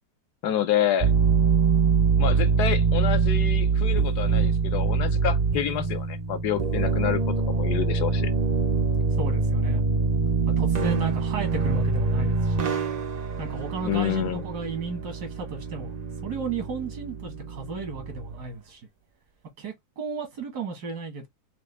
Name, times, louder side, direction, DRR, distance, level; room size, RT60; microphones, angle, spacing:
voice 1, 0.4-1.1 2.2-7.2 7.5-8.3 13.8-14.4, left 10 dB, 80° left, 1.3 m, -28 dB
sound 1, 1.0-18.4, right 5 dB, 60° right, 0.4 m, -24 dB
voice 2, 9.1-9.8 10.6-12.8 13.4-18.9 19.6-21.3, right 4 dB, 85° right, 2.2 m, -34 dB
5.5 x 2.4 x 3.4 m
omnidirectional pair, 1.7 m